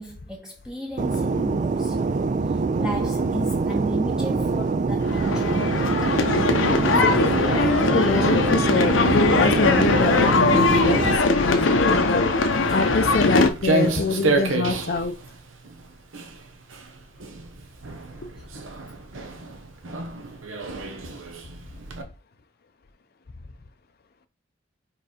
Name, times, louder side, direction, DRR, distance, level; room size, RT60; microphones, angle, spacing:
voice 1, 0.0-2.1 2.8-6.0, right 1 dB, 5° right, 0.7 m, -33 dB
Fixed-wing aircraft airplane, 1.0-11.2, right 4 dB, 40° right, 0.4 m, -24 dB
sound 1, 5.0-13.5, left 3 dB, 75° left, 0.9 m, -21 dB
voice 2, 6.9-12.3 12.7-15.1, left 3 dB, 50° left, 0.6 m, -25 dB
Walk footsteps, 12.5-22.0, right 3 dB, 85° right, 1.1 m, -30 dB
4.6 x 4.0 x 5.0 m
head